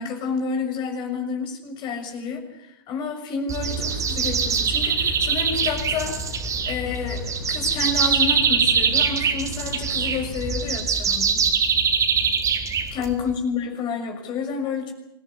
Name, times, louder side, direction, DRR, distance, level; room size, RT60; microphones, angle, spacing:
voice 1, 0.0-11.5 12.9-14.9, left 5 dB, 40° left, 4 dB, 6.2 m, -29 dB
sound 1, 3.5-13.3, right 6 dB, 25° right, 4.2 m, -23 dB
sound 2, 3.6-10.8, left 3 dB, 80° left, 6.6 m, -36 dB
26.0 x 17.5 x 9.7 m, 0.81 s
hypercardioid pair, 105°, 12 cm